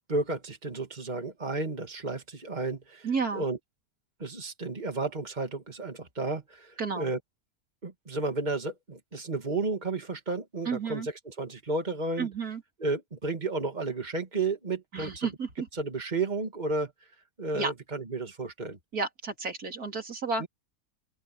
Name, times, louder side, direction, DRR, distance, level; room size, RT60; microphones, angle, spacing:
voice 1, 0.1-3.6 4.2-7.2 7.8-12.3 12.8-15.3 15.7-16.9 17.4-18.8 20.4-20.5, right 3 dB, 30° right, 2.8 m, -32 dB
voice 2, 3.0-3.4 6.8-7.1 10.7-11.1 12.2-12.6 14.9-15.7 17.5-17.7 18.9-20.4, right 4 dB, 80° right, 3.8 m, -31 dB
open air
omnidirectional pair, 1.6 m